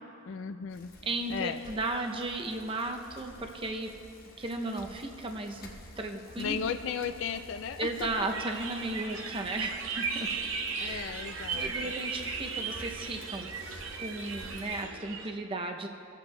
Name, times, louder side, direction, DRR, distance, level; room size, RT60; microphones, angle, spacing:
voice 1, 0.3-0.9 1.3-1.6 6.4-8.3 10.8-11.7, left 7 dB, 65° left, 8 dB, 0.3 m, -35 dB
Bicycle, 0.7-14.8, left 1 dB, 45° left, 1.0 m, -51 dB
voice 2, 1.0-3.9 4.4-5.7 6.0-6.6 7.8-10.4 10.7-11.1 11.5-15.9, right 2 dB, 25° right, 3 dB, 0.5 m, -35 dB
sound 1, 8.3-15.3, right 5 dB, 70° right, 0.8 m, -36 dB
24.5 x 8.2 x 2.2 m, 2.7 s
head